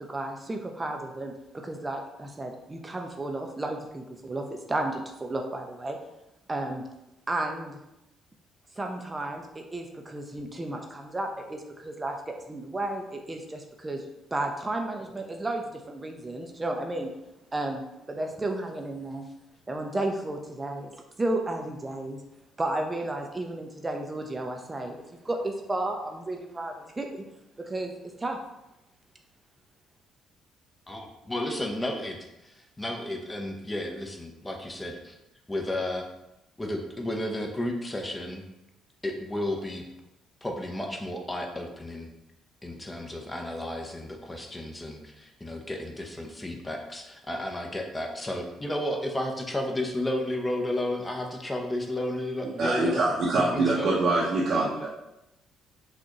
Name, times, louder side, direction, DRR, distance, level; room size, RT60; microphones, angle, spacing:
voice 1, 0.1-1.3 1.6-4.4 4.7-6.0 6.5-6.8 7.3-7.8 8.8-12.2 12.5-14.0 14.3-17.1 17.5-17.8 18.1-19.2 19.7-20.9 21.2-22.2 22.6-27.2 27.6-27.9 28.2-28.4, right 2 dB, 25° right, 2 dB, 0.6 m, -33 dB
voice 2, 30.9-32.2 32.4-35.2 35.5-36.0 36.6-38.4 39.0-39.8 40.4-42.1 42.6-53.9, left 1 dB, 20° left, 3 dB, 0.8 m, -32 dB
voice 3, 52.6-54.9, right 2 dB, 60° right, -6 dB, 0.8 m, -24 dB
6.0 x 2.5 x 3.0 m, 0.91 s
hypercardioid pair, 50°, 0 cm